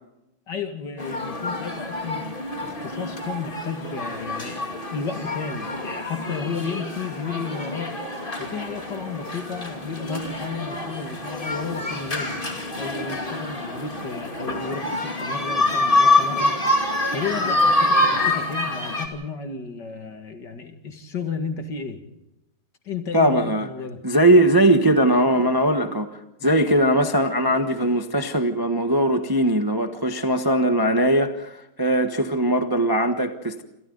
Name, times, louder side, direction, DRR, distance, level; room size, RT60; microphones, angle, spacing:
voice 1, 0.5-2.3 2.6-7.9 8.4-12.4 12.7-16.5 17.1-22.0 22.9-24.0, left 5 dB, 50° left, 2.6 m, -33 dB
sound 1, 1.0-19.1, left 2 dB, 25° left, 2.8 m, -26 dB
voice 2, 23.1-23.7 24.0-26.1 26.4-33.6, right 1 dB, 15° right, 0.9 m, -20 dB
28.0 x 27.5 x 4.0 m
omnidirectional pair, 2.4 m